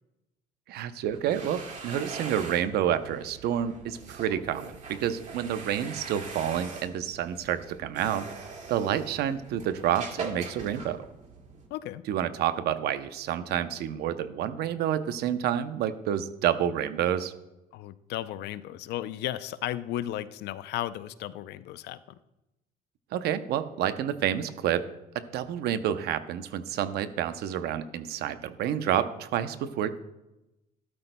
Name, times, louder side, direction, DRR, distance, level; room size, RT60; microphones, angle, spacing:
voice 1, 0.7-8.3 8.7-11.1 12.1-17.3 23.1-24.9 25.1-30.0, right 10 dB, 75° right, 12 dB, 0.7 m, -29 dB
sound 1, 1.0-11.7, right 4 dB, 45° right, 2.1 m, -42 dB
voice 2, 11.7-12.0 17.7-22.2, left 13 dB, 80° left, 14 dB, 0.5 m, -35 dB
13.5 x 12.0 x 2.2 m, 0.96 s
cardioid pair, 110°, 17 cm